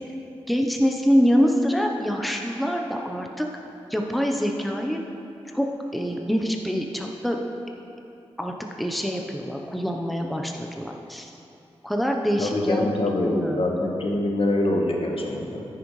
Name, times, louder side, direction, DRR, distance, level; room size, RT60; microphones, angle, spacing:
voice 1, 0.5-3.5 3.9-5.0 5.5-7.4 8.4-11.3 11.8-12.9 13.2-13.6, equal, ahead, 1 dB, 0.9 m, -25 dB
voice 2, 12.4-15.7, left 1 dB, 55° left, 0 dB, 1.4 m, -24 dB
10.0 x 9.9 x 3.3 m, 2.7 s
cardioid pair, 40°, 11 cm